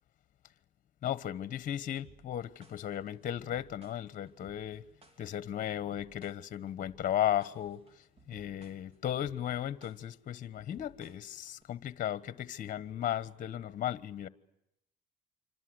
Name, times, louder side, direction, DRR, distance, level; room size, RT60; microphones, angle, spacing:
voice 1, 1.0-4.8 5.2-14.3, left 11 dB, 50° left, 1.3 m, -35 dB
sound 1, 2.0-11.6, right 3 dB, 35° right, 3.4 m, -59 dB
27.0 x 25.5 x 8.0 m
cardioid pair, 110°, 17 cm